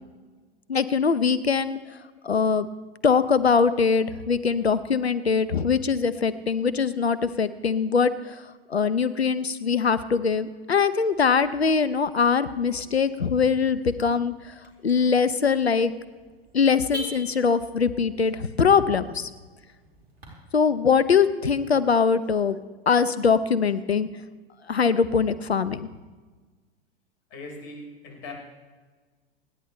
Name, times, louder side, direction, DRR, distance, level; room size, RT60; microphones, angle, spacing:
voice 1, 0.7-1.8 2.2-2.7 3.0-8.4 8.7-14.5 14.8-15.9 16.5-19.3 20.5-22.6 22.9-24.1 24.7-25.9, left 5 dB, 90° left, 14 dB, 0.8 m, -22 dB
Car / Alarm, 11.1-20.3, equal, 75° right, 4.8 m, -46 dB
voice 2, 27.3-28.3, left 2 dB, 45° left, 1 dB, 4.9 m, -40 dB
28.0 x 10.5 x 3.3 m, 1.4 s
figure-of-eight pair, 95°, 31 cm